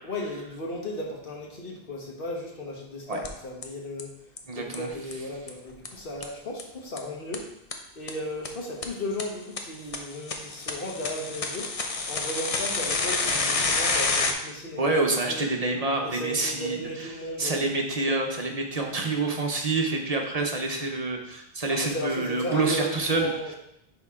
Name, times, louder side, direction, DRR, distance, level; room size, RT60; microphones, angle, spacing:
voice 1, 0.0-4.1 4.5-7.4 7.9-11.7 12.1-15.4 16.0-17.7 21.7-23.6, left 1 dB, 60° left, -1 dB, 1.5 m, -35 dB
sound 1, 3.2-3.3 3.6-3.7 4.0-4.1 4.4-4.5 4.7-4.8 5.1-5.2 5.5-5.6 5.9-6.0 6.2-6.3 6.6-6.7 7.0-7.1 7.3-7.4 7.7-7.8 8.1-8.2 8.5-8.6 8.8-8.9 9.2-9.3 9.6-9.7 9.9-14.3, left 3 dB, 40° left, 0.7 m, -27 dB
voice 2, 4.5-4.9 14.8-16.8 17.4-23.3, right 3 dB, 40° right, 2 dB, 0.9 m, -27 dB
10.0 x 3.5 x 3.7 m, 0.79 s
omnidirectional pair, 1.0 m